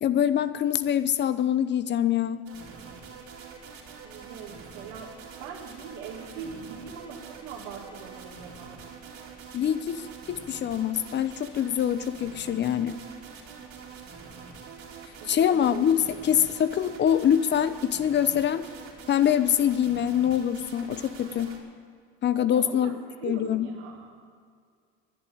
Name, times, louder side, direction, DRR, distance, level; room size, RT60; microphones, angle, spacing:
voice 1, 0.0-2.5 9.5-13.0 15.3-18.7 19.1-21.5 22.2-23.0 23.2-23.7, left 9 dB, 35° left, 14 dB, 0.8 m, -24 dB
sound 1, 2.5-21.6, right 5 dB, 45° right, 3.1 m, -45 dB
voice 2, 4.0-5.1 5.4-8.8 15.2-15.8 22.5-24.2, right 6 dB, 80° right, -2 dB, 1.9 m, -41 dB
11.0 x 10.5 x 9.1 m, 2.1 s
supercardioid pair, 105°, 32 cm